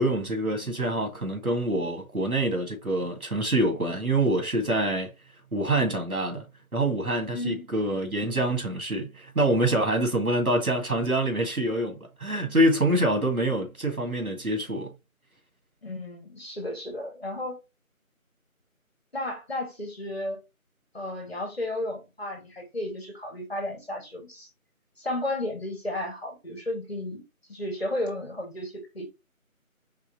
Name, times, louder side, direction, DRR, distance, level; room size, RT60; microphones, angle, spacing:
voice 1, 0.0-5.1 5.5-6.4 6.7-14.9, right 1 dB, 80° right, 2.2 m, -26 dB
voice 2, 7.3-7.7 15.8-17.6 19.1-20.4 20.9-24.5 25.0-27.2 27.5-29.1, left 1 dB, 45° left, 2.0 m, -33 dB
4.7 x 3.5 x 2.9 m
figure-of-eight pair, 175°, 43 cm